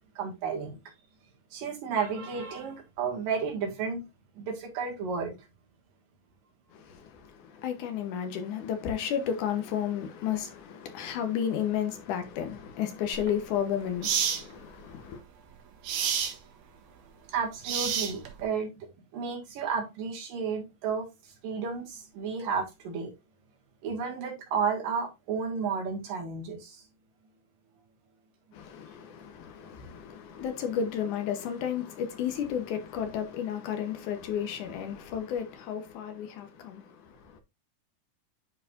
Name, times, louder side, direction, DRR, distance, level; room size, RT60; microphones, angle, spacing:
voice 1, 0.2-0.8 1.5-4.0 4.4-5.4 17.3-18.9 19.1-23.1 23.8-26.8, right 5 dB, 85° right, 3.6 m, -32 dB
voice 2, 6.7-15.2 28.5-37.4, left 8 dB, 75° left, 2.5 m, -33 dB
sound 1, 13.1-13.3 14.0-14.4 15.8-16.4 17.6-18.4, right 8 dB, 65° right, 2.3 m, -28 dB
10.5 x 4.8 x 2.6 m
omnidirectional pair, 3.8 m